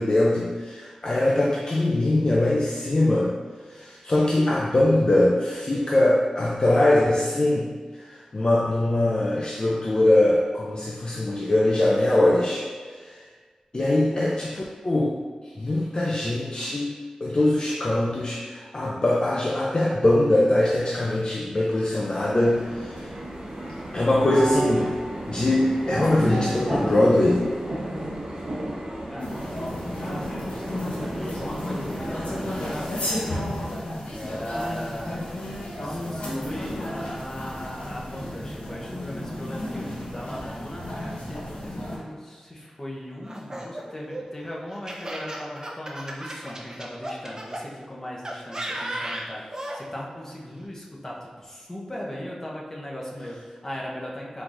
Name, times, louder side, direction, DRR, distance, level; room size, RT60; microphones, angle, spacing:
voice 1, 0.0-3.4 3.7-7.7 8.0-13.2 13.7-15.2 15.6-16.9 17.2-23.1 23.9-25.0 25.3-27.5, left 1 dB, 40° left, -3 dB, 0.5 m, -22 dB
sound 1, 22.1-32.9, right 1 dB, 50° right, 0.9 m, -32 dB
voice 2, 29.1-29.6 29.9-33.4 34.1-35.2 35.8-40.9 41.3-54.4, left 1 dB, 20° left, -3 dB, 0.9 m, -38 dB
sound 2, 29.2-42.0, left 1 dB, 75° left, 0.9 m, -33 dB
Laughter, 43.2-47.6 48.2-49.8, right 1 dB, 30° right, 0.6 m, -34 dB
4.4 x 4.0 x 2.5 m, 1.5 s
wide cardioid pair, 75°, 2 cm